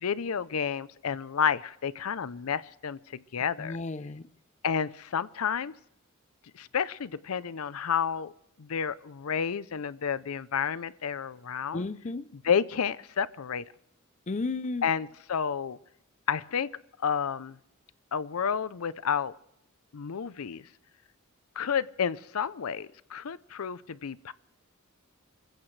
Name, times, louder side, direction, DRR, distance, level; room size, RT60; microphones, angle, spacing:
voice 1, 0.0-3.8 4.6-5.7 6.5-8.3 8.6-11.8 12.3-13.6 14.8-15.8 16.3-16.7 17.0-17.6 18.1-19.3 19.9-20.6 21.6-24.3, left 7 dB, 85° left, 0.6 m, -30 dB
voice 2, 3.6-4.3 11.7-12.3 14.3-14.8, left 3 dB, 35° left, 0.5 m, -33 dB
26.0 x 15.5 x 3.2 m
head